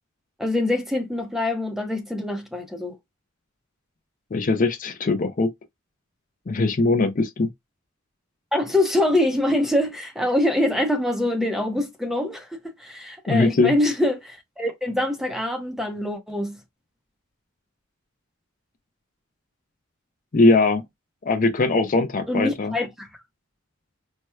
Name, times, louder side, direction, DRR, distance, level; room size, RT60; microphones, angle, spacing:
voice 1, 0.4-3.0 8.5-16.6 22.3-23.1, left 1 dB, ahead, 0.6 m, -24 dB
voice 2, 4.3-5.5 6.5-7.5 13.3-13.7 20.3-20.8 21.2-22.7, left 3 dB, 40° left, 0.4 m, -20 dB
4.3 x 2.2 x 2.3 m
head